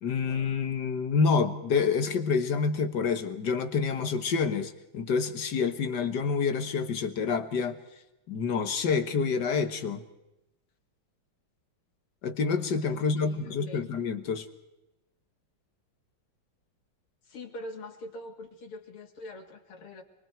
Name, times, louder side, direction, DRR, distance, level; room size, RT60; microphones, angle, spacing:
voice 1, 0.0-7.8 8.3-10.0 12.2-14.5, left 5 dB, 55° left, 9 dB, 1.8 m, -28 dB
voice 2, 13.0-13.9 17.2-20.0, left 1 dB, 85° left, 2 dB, 3.2 m, -43 dB
25.0 x 24.5 x 4.6 m, 0.96 s
omnidirectional pair, 2.4 m